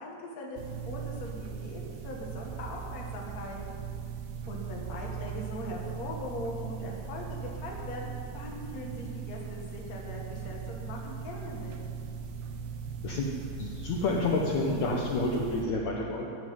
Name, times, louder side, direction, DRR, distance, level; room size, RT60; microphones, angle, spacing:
voice 1, 0.0-3.6 4.5-11.7, left 1 dB, 50° left, -2 dB, 1.1 m, -40 dB
sound 1, 0.6-15.7, right 6 dB, 80° right, 3.0 m, -39 dB
voice 2, 13.6-16.3, left 2 dB, 90° left, -1 dB, 1.6 m, -29 dB
13.5 x 7.4 x 9.5 m, 2.5 s
omnidirectional pair, 4.8 m